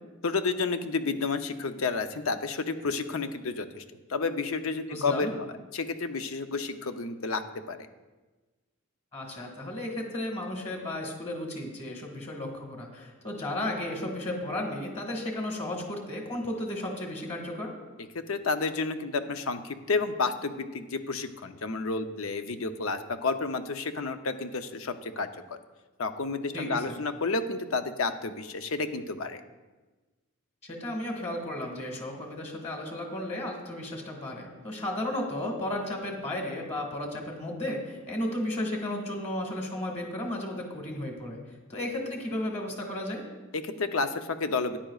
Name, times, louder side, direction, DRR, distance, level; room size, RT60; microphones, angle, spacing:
voice 1, 0.2-3.8 4.1-5.3 5.7-7.4 7.7-7.9 18.1-25.3 26.0-29.4 43.5-44.8, left 4 dB, 80° left, 8 dB, 0.7 m, -30 dB
voice 2, 4.9-5.3 9.1-17.7 26.5-27.0 30.6-41.4 41.7-43.2, left 1 dB, 30° left, 1 dB, 1.8 m, -34 dB
14.0 x 10.0 x 2.4 m, 1.2 s
head